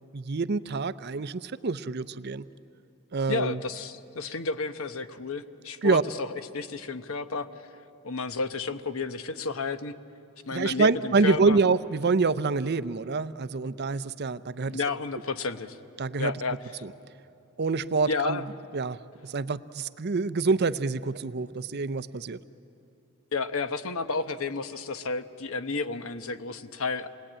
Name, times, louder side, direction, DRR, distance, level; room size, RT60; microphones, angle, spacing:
voice 1, 0.1-2.4 3.1-3.6 5.8-6.0 10.5-14.8 16.0-16.3 16.8-16.9 17.6-18.4 18.7-22.4, right 4 dB, 50° right, 14 dB, 0.6 m, -26 dB
voice 2, 3.3-6.3 6.5-7.5 8.0-9.9 10.5-11.6 14.6-15.8 16.2-16.8 18.1-18.5 23.3-27.1, left 4 dB, 70° left, 10 dB, 1.0 m, -31 dB
27.5 x 20.5 x 8.8 m, 2.8 s
head